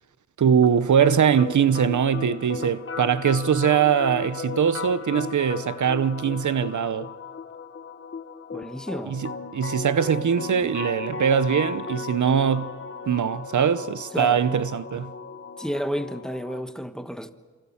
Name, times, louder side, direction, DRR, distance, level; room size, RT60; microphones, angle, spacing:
voice 1, 0.4-7.1 9.0-12.7 13.1-15.1, right 7 dB, 75° right, 0.9 m, -22 dB
sound 1, 0.6-16.6, left 5 dB, 40° left, 1.2 m, -36 dB
voice 2, 8.5-9.2 14.1-14.4 15.6-17.3, equal, ahead, 1.2 m, -31 dB
28.5 x 27.0 x 7.2 m
wide cardioid pair, 140°, 30 cm